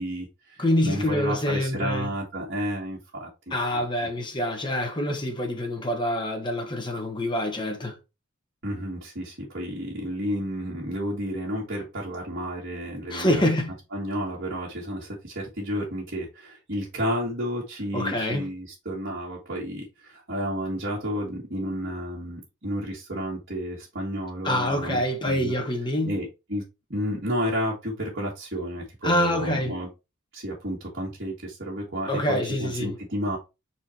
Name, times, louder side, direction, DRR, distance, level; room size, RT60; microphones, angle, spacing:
voice 1, 0.0-3.8 8.6-13.4 13.9-25.5 26.0-26.6 26.9-29.9 30.3-33.4, equal, 55° right, 2.3 m, -31 dB
voice 2, 0.6-2.1 3.5-8.0 13.1-13.7 17.9-18.5 24.4-26.1 29.0-29.7 32.1-33.0, left 1 dB, 25° left, 1.5 m, -26 dB
4.7 x 4.4 x 4.5 m
head